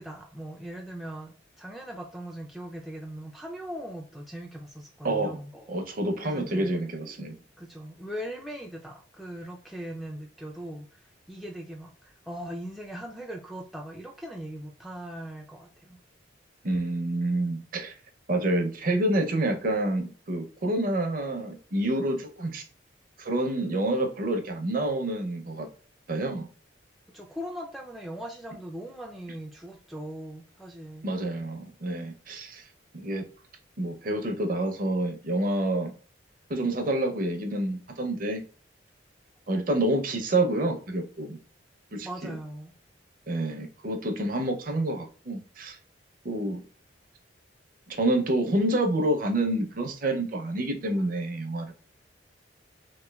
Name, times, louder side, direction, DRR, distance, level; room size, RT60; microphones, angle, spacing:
voice 1, 0.0-5.8 6.2-6.7 7.0-7.3 7.6-16.0 27.1-31.1 42.0-42.7, equal, ahead, -1 dB, 0.3 m, -40 dB
voice 2, 5.0-5.4 5.7-7.4 16.6-17.9 18.3-22.6 23.2-25.7 26.1-26.5 31.0-32.6 32.9-33.3 33.8-35.9 36.5-38.4 39.5-41.4 41.9-42.3 43.3-45.8 46.2-46.6 47.9-51.7, right 1 dB, 45° right, 5 dB, 0.6 m, -28 dB
3.5 x 3.0 x 2.2 m, 0.41 s
head